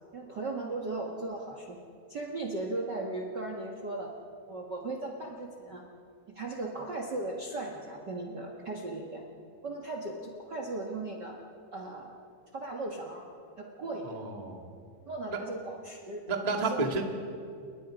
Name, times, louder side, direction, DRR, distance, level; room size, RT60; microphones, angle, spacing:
voice 1, 0.1-1.8 2.1-4.1 4.5-5.8 6.3-9.2 9.6-11.4 11.7-12.1 12.5-13.2 13.6-14.2 15.1-16.2 16.5-16.9, right 2 dB, 65° right, 1 dB, 1.0 m, -37 dB
voice 2, 13.9-14.8 15.3-15.4 16.3-17.0, right 3 dB, 90° right, 2 dB, 0.3 m, -31 dB
29.0 x 22.5 x 5.2 m, 2.4 s
omnidirectional pair, 4.8 m